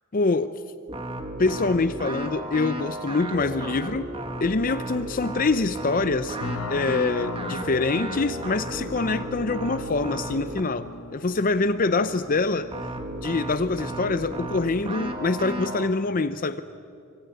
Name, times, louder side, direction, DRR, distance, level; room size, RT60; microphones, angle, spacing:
voice 1, 0.1-0.6 1.4-4.1 4.4-6.4 6.7-12.7 13.2-16.6, left 3 dB, 40° left, 11 dB, 0.6 m, -25 dB
sound 1, 0.9-10.7 12.7-15.9, right 1 dB, 25° right, 1.9 m, -34 dB
sound 2, 6.4-13.3, left 3 dB, 85° left, 1.2 m, -39 dB
25.0 x 23.5 x 9.3 m, 2.5 s
head